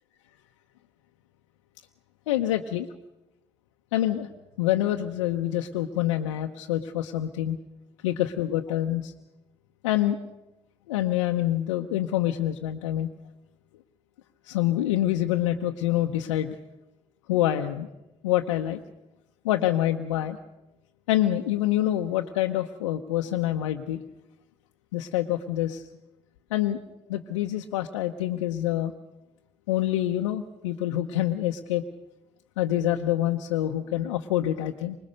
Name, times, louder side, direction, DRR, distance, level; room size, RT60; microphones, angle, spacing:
voice 1, 2.3-2.9 3.9-4.3 4.6-7.6 8.0-9.1 9.8-10.2 10.9-13.1 14.4-16.5 17.3-17.9 18.2-18.8 19.4-20.4 21.1-24.0 24.9-25.8 26.5-26.8 27.1-28.9 29.7-31.8 32.6-35.0, left 13 dB, 85° left, 4 dB, 0.8 m, -26 dB
25.5 x 20.0 x 6.7 m, 0.94 s
hypercardioid pair, 45°, 15 cm